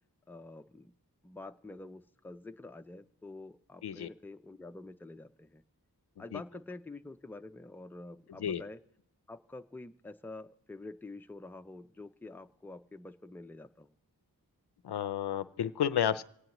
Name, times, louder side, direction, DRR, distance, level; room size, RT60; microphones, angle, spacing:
voice 1, 0.3-0.9 1.2-5.6 6.2-8.8 9.3-13.9, left 2 dB, 5° left, 8 dB, 0.4 m, -47 dB
voice 2, 14.8-16.2, left 9 dB, 85° left, 15 dB, 0.5 m, -31 dB
27.0 x 9.2 x 2.9 m, 0.77 s
wide cardioid pair, 55°, 39 cm